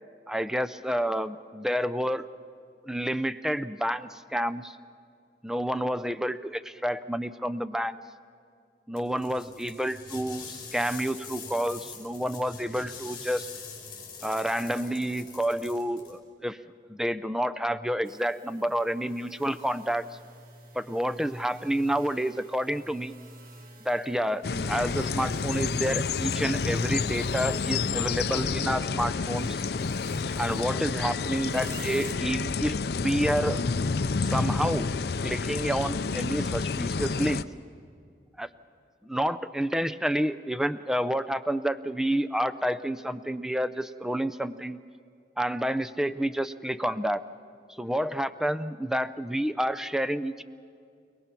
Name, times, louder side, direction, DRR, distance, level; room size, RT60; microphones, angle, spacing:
voice 1, 0.3-2.3 2.8-4.8 5.4-8.0 8.9-13.5 14.2-16.6 16.9-20.1 20.7-23.1 23.8-29.6 30.4-33.6 34.2-34.9 35.2-37.5 38.4-38.5 39.0-44.8 45.4-47.2 47.7-50.4, equal, 5° right, 13 dB, 0.4 m, -29 dB
sound 1, 8.9-16.2, left 5 dB, 25° left, 5.2 m, -43 dB
sound 2, 18.0-28.8 29.1-32.1, right 2 dB, 50° right, 1.6 m, -50 dB
sound 3, 24.4-37.4, left 4 dB, 60° left, 0.5 m, -29 dB
30.0 x 18.5 x 5.9 m, 2.3 s
head